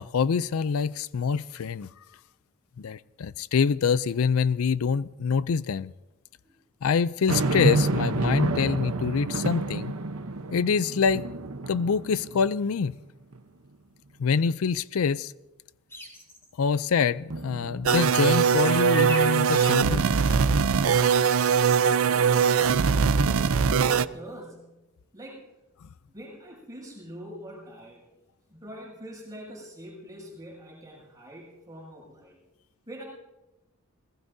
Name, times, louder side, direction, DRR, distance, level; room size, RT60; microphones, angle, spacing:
voice 1, 0.0-1.9 2.8-5.9 6.8-9.9 10.5-11.2 11.7-12.9 14.2-15.3 16.6-20.4 25.8-25.9, left 6 dB, 75° left, 0.4 m, -25 dB
sound 1, 7.3-12.8 13.3-13.4 17.3-18.4, right 2 dB, 90° right, 0.9 m, -29 dB
sound 2, 15.9-16.5 18.6-20.4, left 2 dB, 10° left, 3.1 m, -38 dB
sound 3, 17.8-24.0, right 6 dB, 70° right, 0.5 m, -21 dB
voice 2, 21.4-24.8 25.1-25.5 26.1-28.0 28.5-32.4 32.9-33.0, equal, 15° right, 7.1 m, -44 dB
27.5 x 18.5 x 2.7 m
head